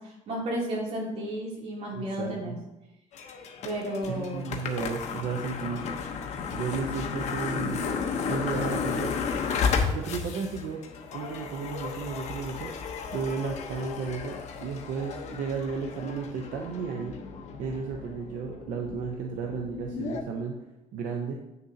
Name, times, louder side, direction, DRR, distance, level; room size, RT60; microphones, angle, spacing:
voice 1, 0.0-2.6 3.6-4.5, equal, 50° right, -4 dB, 2.9 m, -33 dB
voice 2, 1.9-2.6 4.0-5.8 6.5-7.9 8.3-9.1 9.8-10.8 11.1-12.7 13.1-17.2 17.6-20.6 20.9-21.3, right 5 dB, 80° right, 1 dB, 0.9 m, -33 dB
sound 1, 3.1-20.2, left 5 dB, 60° left, 1.0 m, -33 dB
9.0 x 6.7 x 2.8 m, 0.99 s
cardioid pair, 135°, 13 cm